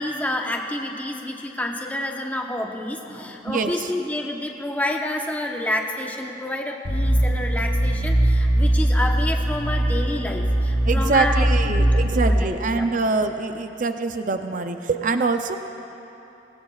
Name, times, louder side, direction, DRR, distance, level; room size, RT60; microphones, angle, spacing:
voice 1, 0.0-11.5 11.8-12.9, left 1 dB, 10° left, 1 dB, 1.0 m, -29 dB
voice 2, 3.5-3.9 10.9-15.6, right 3 dB, 45° right, 7 dB, 0.5 m, -24 dB
sound 1, 6.8-12.4, right 1 dB, 75° left, 2.1 m, -21 dB
25.0 x 19.5 x 2.4 m, 3.0 s
head